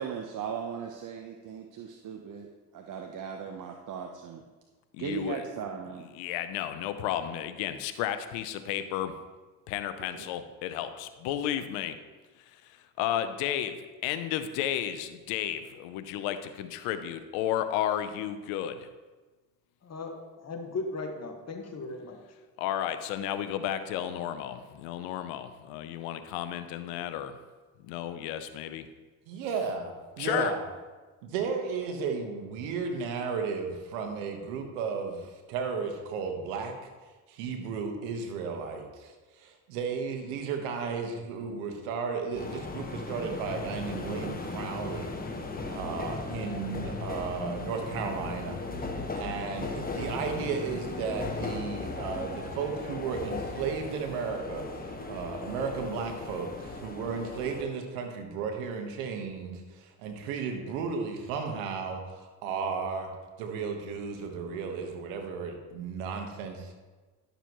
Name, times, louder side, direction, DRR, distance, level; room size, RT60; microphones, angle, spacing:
voice 1, 0.0-2.5 2.7-4.4 5.0-6.0 10.1-10.2, right 7 dB, 50° right, 3 dB, 0.9 m, -37 dB
voice 2, 4.9-5.4 6.1-9.1 9.7-12.0 13.0-13.8 14.0-18.9 22.6-27.3 27.8-28.9 30.2-30.5, left 11 dB, 85° left, 10 dB, 0.8 m, -32 dB
voice 3, 19.8-22.2, left 3 dB, 40° left, 3 dB, 1.7 m, -37 dB
voice 4, 29.3-30.6 31.2-36.7 37.3-39.1 39.4-45.1 45.7-48.6 49.1-54.6 55.1-63.1 63.4-66.7, right 5 dB, 90° right, 4 dB, 1.4 m, -34 dB
sound 1, 42.3-57.6, left 3 dB, 20° left, 1.3 m, -37 dB
11.5 x 6.7 x 3.1 m, 1.3 s
supercardioid pair, 80°, 42 cm